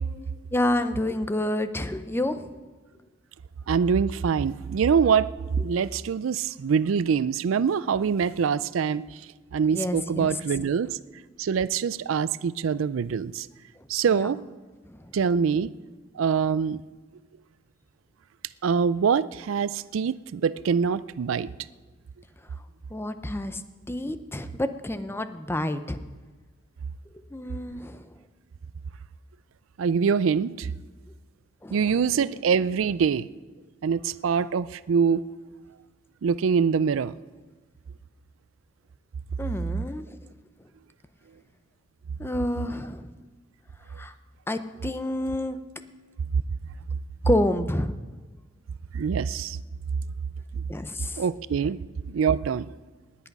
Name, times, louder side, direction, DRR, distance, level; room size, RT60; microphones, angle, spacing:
voice 1, 0.5-2.5 9.7-10.4 14.1-14.3 14.9-15.0 22.9-23.6 23.9-26.0 27.3-28.1 31.6-32.1 39.4-40.2 42.2-43.1 44.0-44.1 44.5-45.6 47.3-47.9 50.7-51.2, left 1 dB, 10° left, 11 dB, 0.6 m, -29 dB
voice 2, 3.7-5.3 5.6-9.0 9.5-10.9 11.4-13.5 13.9-14.4 15.1-15.7 16.2-16.8 18.6-21.5 29.8-30.7 31.7-33.3 33.8-35.2 36.2-37.1 48.9-49.6 51.2-51.8 52.1-52.7, right 6 dB, 80° right, 18 dB, 0.4 m, -24 dB
19.5 x 8.5 x 5.3 m, 1.3 s
head